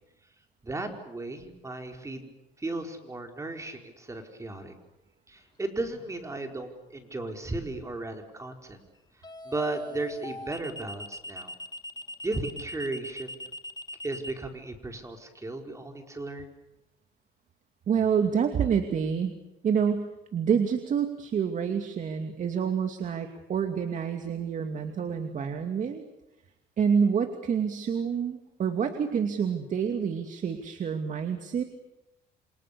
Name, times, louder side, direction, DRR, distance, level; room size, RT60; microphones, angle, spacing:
voice 1, 0.6-2.3 2.6-4.7 5.3-8.8 9.4-11.5 12.2-13.3 14.0-16.5, right 2 dB, 15° right, 4 dB, 5.0 m, -35 dB
sound 1, 5.9-6.3 9.2-14.3, left 1 dB, 25° left, 2.4 m, -40 dB
voice 2, 17.9-19.3 19.6-26.0 26.8-31.6, right 7 dB, 45° right, 6 dB, 2.5 m, -27 dB
28.5 x 27.0 x 7.0 m, 0.93 s
cardioid pair, 110°, 17 cm